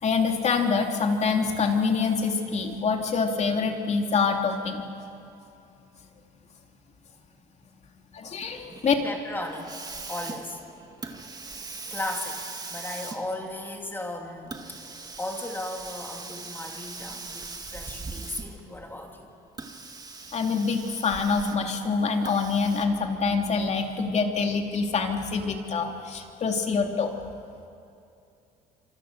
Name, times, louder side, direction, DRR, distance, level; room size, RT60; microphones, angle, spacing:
voice 1, 0.0-4.8 8.1-8.9 20.3-27.1, left 5 dB, 40° left, 3 dB, 2.9 m, -25 dB
Hiss, 8.4-18.7 19.5-21.7 22.2-22.9, right 3 dB, 25° right, 2.1 m, -40 dB
voice 2, 9.0-9.8 10.1-11.2 11.5-11.6 11.9-12.4 12.7-19.3, left 1 dB, 10° left, 1 dB, 3.2 m, -36 dB
26.5 x 25.5 x 6.7 m, 2.6 s
cardioid pair, 110°, 17 cm